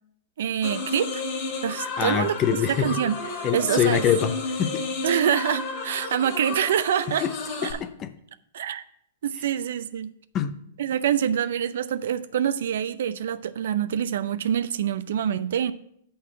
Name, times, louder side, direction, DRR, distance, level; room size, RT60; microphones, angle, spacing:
voice 1, 0.4-1.2 1.6-2.4 2.7-4.0 5.0-7.2 7.6-7.7 8.5-8.8 9.2-10.1 10.8-15.7, right 9 dB, 70° right, 13 dB, 0.5 m, -25 dB
sound 1, 0.6-7.7, left 3 dB, 45° left, 2.3 m, -32 dB
voice 2, 2.0-3.0 3.4-4.8 7.2-7.3 7.6-8.1 10.3-10.5, left 9 dB, 30° left, 11 dB, 0.7 m, -25 dB
6.6 x 5.5 x 6.1 m, 0.70 s
hypercardioid pair, 120°, 0 cm